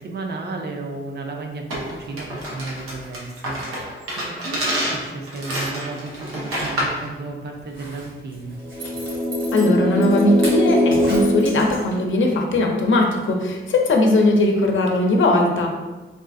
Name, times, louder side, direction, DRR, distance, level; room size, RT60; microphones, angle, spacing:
voice 1, 0.0-8.5, right 3 dB, 50° right, 2 dB, 0.5 m, -33 dB
sound 1, 1.7-7.0, equal, 90° right, 0.8 m, -28 dB
Zipper (clothing), 7.6-12.2 12.5-12.6, right 1 dB, 70° right, 1.1 m, -36 dB
sound 2, 8.6-12.5, left 1 dB, 10° left, 0.6 m, -22 dB
voice 2, 9.5-15.7, left 2 dB, 65° left, 2 dB, 0.5 m, -19 dB
3.6 x 2.3 x 2.5 m, 1.2 s
wide cardioid pair, 125°, 21 cm